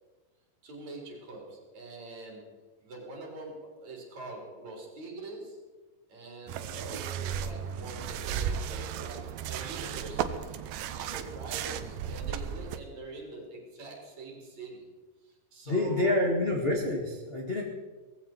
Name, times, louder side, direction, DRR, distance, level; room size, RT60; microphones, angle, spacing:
voice 1, 0.6-5.6 6.1-10.6 10.9-14.9 15.2-16.4, right 2 dB, 50° right, 0 dB, 4.7 m, -44 dB
sound 1, 6.5-12.8, right 8 dB, 75° right, 2.4 m, -35 dB
voice 2, 15.7-17.6, left 2 dB, 35° left, -1 dB, 0.9 m, -27 dB
19.0 x 15.5 x 4.5 m, 1.3 s
omnidirectional pair, 4.2 m